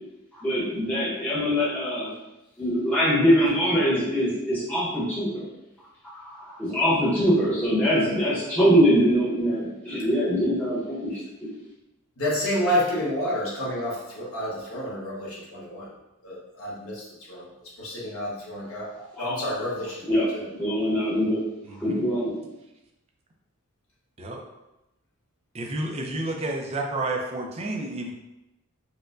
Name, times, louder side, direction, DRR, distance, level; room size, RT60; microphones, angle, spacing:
voice 1, 0.3-2.1 2.6-5.4 6.3-11.5 19.1-19.4 20.1-21.5 21.8-22.3, equal, 5° left, -11 dB, 0.7 m, -23 dB
voice 2, 12.2-15.9 16.2-17.5 17.8-18.9 19.2-20.5, equal, 70° left, -6 dB, 1.1 m, -29 dB
voice 3, 21.7-22.1 24.2-24.4 25.5-28.1, right 2 dB, 30° right, 1 dB, 0.4 m, -30 dB
4.2 x 2.1 x 2.5 m, 0.94 s
head